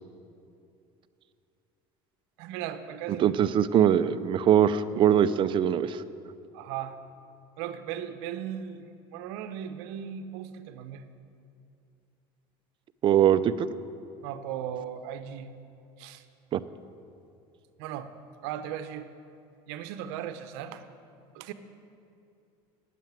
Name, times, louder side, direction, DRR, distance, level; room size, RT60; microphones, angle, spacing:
voice 1, 2.4-3.3 6.5-7.0 7.6-11.0 14.2-15.5 16.0-16.2 17.8-18.1 18.4-19.1 19.7-20.8 21.3-21.5, right 9 dB, 80° right, 11 dB, 0.7 m, -37 dB
voice 2, 3.2-6.0 13.0-13.7 16.5-16.6, right 9 dB, 40° right, 13 dB, 0.5 m, -22 dB
9.2 x 7.6 x 9.1 m, 2.6 s
supercardioid pair, 105°, 13 cm